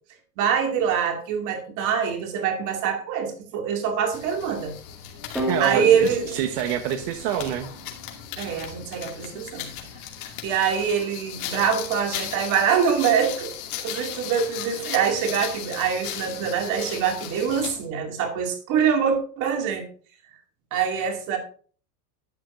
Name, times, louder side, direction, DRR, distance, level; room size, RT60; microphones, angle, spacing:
voice 1, 0.4-4.7 5.6-6.3 8.4-9.7 10.4-13.5 13.8-19.9 20.7-21.4, right 7 dB, 40° right, 3 dB, 2.5 m, -24 dB
sound 1, 4.1-17.8, left 10 dB, 65° left, 2.5 m, -37 dB
sound 2, 5.4-8.2, equal, ahead, 2.3 m, -33 dB
voice 2, 5.5-7.7, right 10 dB, 80° right, 7 dB, 1.2 m, -27 dB
12.0 x 9.2 x 2.6 m, 0.42 s
supercardioid pair, 175°, 47 cm